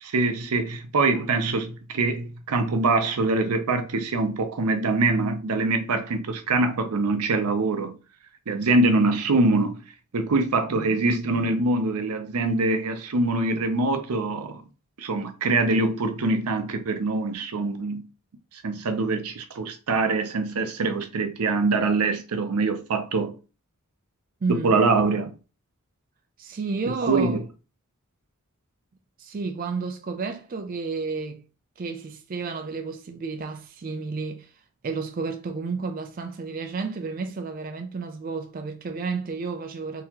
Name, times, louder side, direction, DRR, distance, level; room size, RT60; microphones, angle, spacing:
voice 1, 0.0-8.0 8.5-9.8 10.1-14.6 15.0-18.0 18.5-23.3 24.5-25.3 27.1-27.4, right 3 dB, 85° right, 0.6 m, -24 dB
voice 2, 24.4-24.8 26.4-27.4 29.2-31.4 31.8-34.5 34.8-40.0, right 4 dB, 40° right, 0.4 m, -31 dB
3.9 x 2.8 x 2.9 m
head